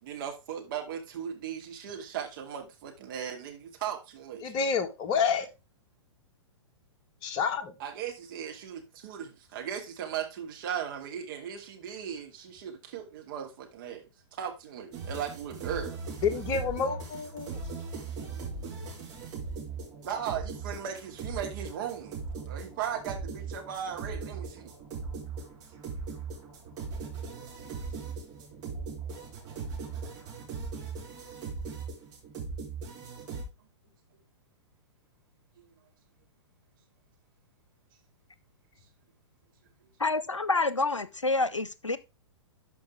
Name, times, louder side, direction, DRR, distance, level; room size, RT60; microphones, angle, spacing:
voice 1, 0.0-4.5 7.8-14.1 14.4-16.0 20.0-22.2 22.5-24.7 35.6-35.7, right 8 dB, 45° right, 2.4 m, -37 dB
voice 2, 4.4-5.5 7.2-7.7 16.2-17.6, left 6 dB, 30° left, 1.3 m, -29 dB
sound 1, 14.9-33.4, right 4 dB, 25° right, 3.0 m, -39 dB
voice 3, 40.0-42.0, left 3 dB, 85° left, 0.7 m, -28 dB
12.0 x 5.1 x 3.4 m
figure-of-eight pair, 110°, 15 cm